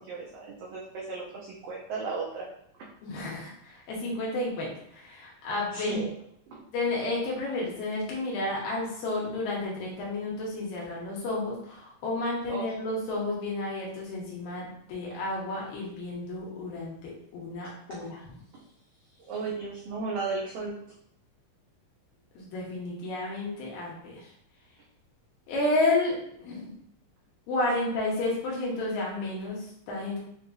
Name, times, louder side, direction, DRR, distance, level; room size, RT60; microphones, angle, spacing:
voice 1, 0.0-2.5 2.8-2.9 5.7-6.1 6.5-6.6 12.5-12.7 18.5-18.6 19.3-20.8, right 4 dB, 85° right, -3 dB, 1.6 m, -35 dB
voice 2, 3.0-6.0 6.7-18.4 22.4-24.3 25.5-26.1 26.4-26.7 27.5-30.2, left 2 dB, 80° left, -4 dB, 2.6 m, -31 dB
6.4 x 2.3 x 2.5 m, 0.72 s
omnidirectional pair, 4.0 m